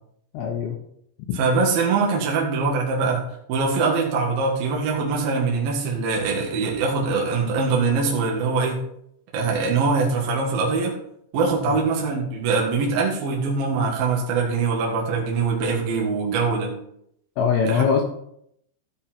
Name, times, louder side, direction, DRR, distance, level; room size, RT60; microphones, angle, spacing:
voice 1, 0.3-0.8 1.3-1.4 11.6-11.8 17.4-18.0, left 6 dB, 80° left, 2 dB, 2.4 m, -22 dB
voice 2, 1.3-3.2 3.5-8.8 9.3-11.0 11.3-16.7 17.6-17.9, right 4 dB, 60° right, -2 dB, 3.0 m, -23 dB
15.0 x 5.3 x 4.4 m, 0.72 s
omnidirectional pair, 5.6 m